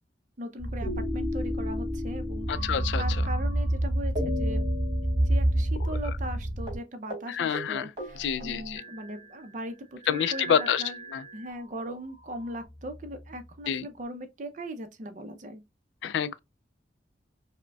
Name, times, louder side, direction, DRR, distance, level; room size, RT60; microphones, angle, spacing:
voice 1, 0.4-4.7 5.3-11.0 11.3-15.6, right 1 dB, 45° right, 0.6 m, -39 dB
sound 1, 0.6-6.8, right 1 dB, 5° left, 1.8 m, -28 dB
sound 2, 0.8-3.8 4.2-6.0 6.2-6.4 6.7-6.8 7.1-7.3 7.5-9.3 10.0-11.6 12.3-13.2, left 1 dB, 25° right, 1.7 m, -37 dB
voice 2, 2.5-3.0 7.3-7.9 8.2-8.8 10.1-10.8 11.1-11.2 13.7-13.9 16.0-16.4, left 8 dB, 75° left, 0.3 m, -27 dB
4.9 x 2.1 x 2.2 m
head